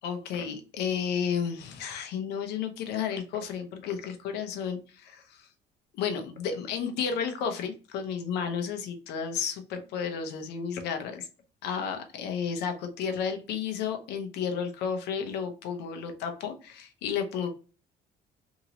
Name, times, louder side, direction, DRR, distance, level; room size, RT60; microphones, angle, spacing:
voice 1, 0.0-5.5 6.0-11.3 11.6-17.5, left 7 dB, 80° left, 6 dB, 0.7 m, -32 dB
2.9 x 2.8 x 2.8 m, 0.36 s
cardioid pair, 110°, 17 cm